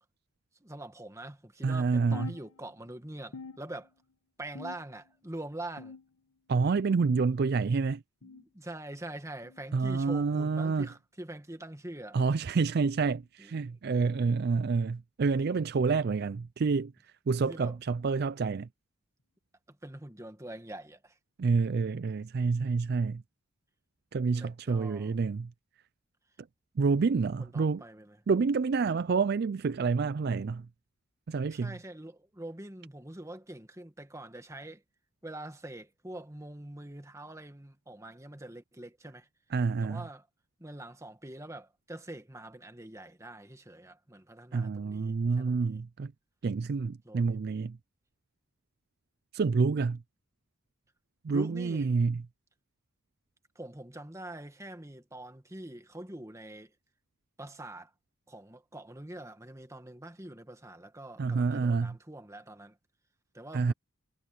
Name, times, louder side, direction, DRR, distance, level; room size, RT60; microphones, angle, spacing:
voice 1, 0.6-3.9 4.4-5.9 8.2-12.2 13.4-13.7 17.4-17.8 19.7-21.1 24.3-25.2 27.4-28.2 31.5-34.8 35.2-39.3 39.8-40.3 40.6-45.8 47.0-47.5 51.3-51.9 53.5-56.7 57.4-57.9 58.3-62.7 63.3-63.7, right 1 dB, 15° right, 1.6 m, -44 dB
voice 2, 1.6-2.3 6.5-8.0 9.7-10.9 12.1-16.9 17.3-18.7 21.4-23.2 24.1-25.5 26.8-27.8 28.3-30.7 31.3-31.7 39.5-40.0 44.5-46.1 46.4-47.8 49.3-50.0 51.2-52.2 61.2-61.9 63.5-63.7, right 4 dB, 50° right, 0.4 m, -28 dB
sound 1, 2.1-3.0 3.3-4.1 4.6-5.2 5.8-6.4 7.0-7.4 8.2-8.5 9.4-9.7 10.7-10.9 11.9-12.1 13.1-13.3 14.3-14.5 15.5-15.6 16.8-16.9, left 4 dB, 85° left, 1.6 m, -47 dB
head